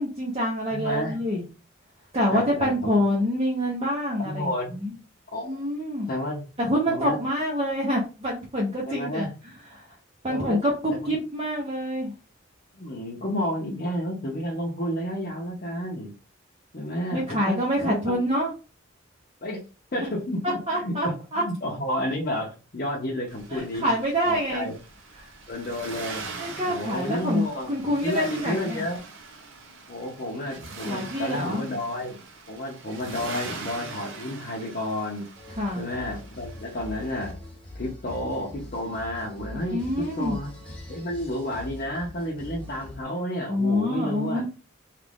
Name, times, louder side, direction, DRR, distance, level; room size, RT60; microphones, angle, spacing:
voice 1, 0.0-1.4 2.1-4.9 5.4-6.1 6.6-9.3 9.7-9.9 10.2-12.1 17.1-18.5 20.7-21.4 23.5-24.7 25.2-25.3 26.4-28.8 30.8-31.6 35.6-35.9 39.7-40.4 43.5-44.5, equal, 30° right, -4 dB, 0.7 m, -26 dB
voice 2, 0.7-1.2 2.3-2.9 4.2-4.8 5.3-5.6 6.1-6.4 6.9-7.2 8.8-9.3 10.3-10.6 11.0-11.1 12.7-16.1 16.7-18.2 19.4-19.6 19.9-23.9 24.3-24.7 25.5-26.3 26.6-29.0 29.9-32.2 32.5-35.3 35.7-37.4 37.7-40.5 40.9-44.4, left 1 dB, 45° left, -4 dB, 0.7 m, -31 dB
Accelerating revving vroom, 23.3-37.3, right 3 dB, 70° right, 0.7 m, -41 dB
sound 1, 35.3-43.0, left 2 dB, 5° left, 0.9 m, -42 dB
3.0 x 2.4 x 3.4 m, 0.33 s
head